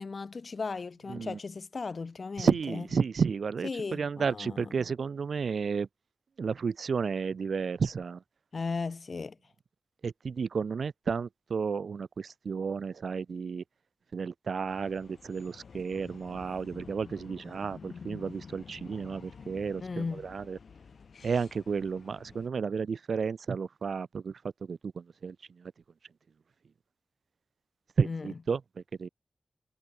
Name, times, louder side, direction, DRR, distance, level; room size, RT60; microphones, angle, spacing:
voice 1, 0.0-2.8 3.6-4.9 8.5-9.4 19.8-20.3 28.0-28.4, left 4 dB, 60° left, 2.1 m, -36 dB
voice 2, 2.4-5.9 6.4-8.2 10.0-13.6 14.1-19.8 20.1-20.6 21.2-24.3 24.7-25.7 28.0-28.6 29.0-29.1, right 5 dB, 85° right, 0.4 m, -32 dB
sound 1, 14.7-22.5, left 5 dB, 85° left, 2.5 m, -50 dB
wide cardioid pair, 95°, 0 cm